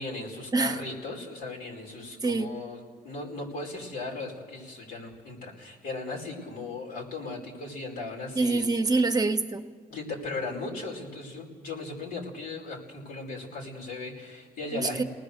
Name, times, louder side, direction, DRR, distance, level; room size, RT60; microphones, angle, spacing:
voice 1, 0.0-8.7 9.9-15.1, left 3 dB, 85° left, -1 dB, 5.1 m, -37 dB
voice 2, 8.3-9.6 14.7-15.0, right 3 dB, 25° right, 6 dB, 1.2 m, -25 dB
29.5 x 19.5 x 6.7 m, 1.5 s
cardioid pair, 95°, 15 cm